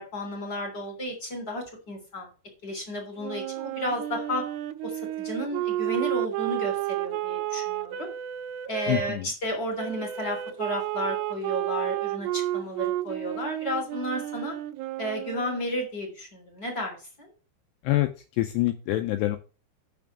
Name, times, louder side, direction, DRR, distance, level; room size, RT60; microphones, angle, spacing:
voice 1, 0.0-2.3 2.6-4.4 4.8-8.1 8.7-14.5 15.0-17.3, equal, 25° left, 2 dB, 2.9 m, -33 dB
Wind instrument woodwind instrument, 3.2-9.1 9.8-15.6, right 14 dB, 85° right, 2.4 m, -31 dB
voice 2, 8.9-9.3 17.8-18.1 18.4-19.4, left 16 dB, 85° left, 7 dB, 2.5 m, -25 dB
7.1 x 6.1 x 7.1 m, 0.34 s
omnidirectional pair, 5.5 m